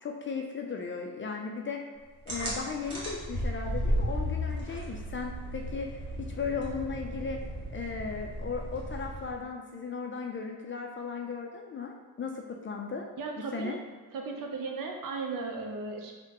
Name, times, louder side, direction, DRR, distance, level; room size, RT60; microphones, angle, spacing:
voice 1, 0.0-1.8 2.3-7.4 7.7-13.1 13.4-13.8, left 5 dB, 30° left, 1 dB, 0.4 m, -36 dB
sound 1, 2.3-9.4, equal, 70° right, 1.3 m, -34 dB
voice 2, 13.2-13.8 14.1-16.1, right 4 dB, 55° right, 2 dB, 0.6 m, -36 dB
3.6 x 2.2 x 2.9 m, 1.4 s
supercardioid pair, 65°, 41 cm